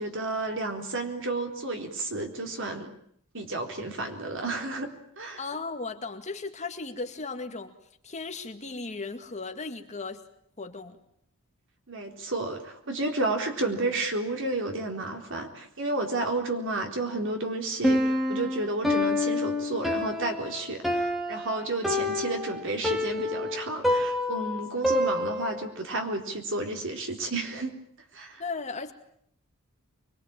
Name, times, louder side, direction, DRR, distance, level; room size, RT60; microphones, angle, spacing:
voice 1, 0.0-2.9 3.3-5.4 11.9-27.8 28.1-28.4, right 2 dB, 60° right, 4 dB, 4.0 m, -31 dB
voice 2, 5.4-7.7 8.0-10.2 10.6-11.0 28.4-28.9, left 3 dB, 30° left, 6 dB, 2.2 m, -36 dB
Piano, 17.8-25.7, left 1 dB, ahead, 2.8 m, -27 dB
25.5 x 22.5 x 9.0 m, 0.68 s
head